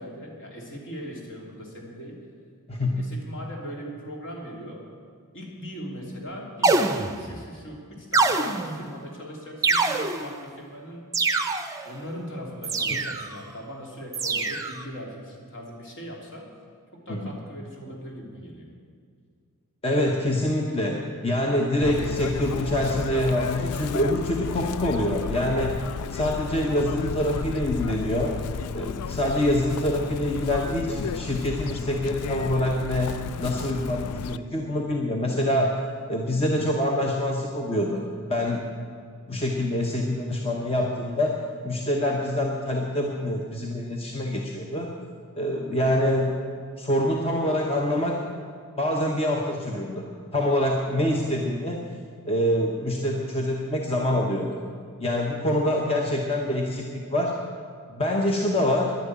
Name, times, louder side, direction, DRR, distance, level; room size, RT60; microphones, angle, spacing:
voice 1, 0.0-2.3 2.8-4.9 5.3-11.1 11.8-16.5 16.9-18.7, equal, 55° left, -1 dB, 3.0 m, -40 dB
voice 2, 2.7-3.0 12.9-13.0 17.1-17.3 19.8-25.8 26.1-28.4 28.7-35.8 36.1-38.6 39.3-44.9 45.4-46.3 46.8-48.3 48.8-50.0 50.3-51.8 52.2-54.6 55.0-57.4 57.9-59.0, left 1 dB, 25° left, 0 dB, 1.0 m, -25 dB
sound 1, 6.6-7.4 8.1-8.9 9.6-10.4 11.1-11.9 12.6-13.4 14.1-14.8, right 3 dB, 15° right, 0.7 m, -24 dB
Chirp tweet, 21.8-34.4, left 6 dB, 85° left, 0.4 m, -33 dB
11.0 x 11.0 x 8.7 m, 2.2 s
head